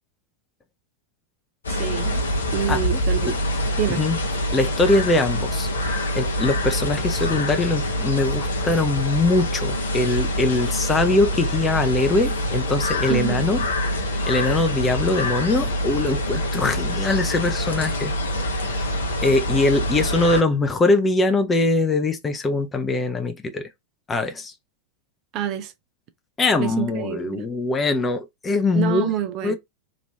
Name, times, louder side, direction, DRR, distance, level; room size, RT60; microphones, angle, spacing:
sound 1, 1.6-20.4, equal, 70° left, 0.8 m, -25 dB
voice 1, 1.7-2.2 2.5-3.4 3.8-4.0 13.1-13.4 25.3-25.7 26.6-27.4 28.7-29.5, right 11 dB, 40° right, 0.5 m, -27 dB
voice 2, 3.9-4.2 4.5-13.6 14.0-18.2 18.4-18.9 19.2-23.7 24.1-24.5 26.4-29.2 29.4-29.5, left 3 dB, 15° left, 0.6 m, -22 dB
3.0 x 2.6 x 3.2 m
figure-of-eight pair, 90°, 0 cm